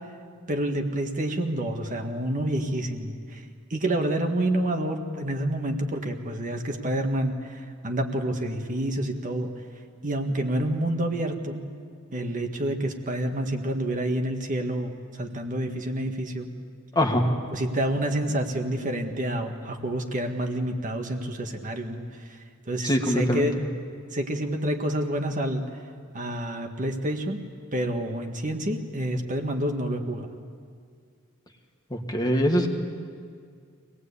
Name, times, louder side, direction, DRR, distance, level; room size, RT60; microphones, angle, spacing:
voice 1, 0.5-9.5 10.0-11.6 12.1-16.5 17.5-22.4 22.7-23.6 24.1-25.8 26.1-27.4 27.7-30.3, right 1 dB, 40° right, 4 dB, 1.7 m, -28 dB
voice 2, 16.9-17.3 22.8-23.5 31.9-32.7, equal, 20° left, 2 dB, 1.8 m, -23 dB
24.5 x 19.0 x 8.4 m, 2.1 s
head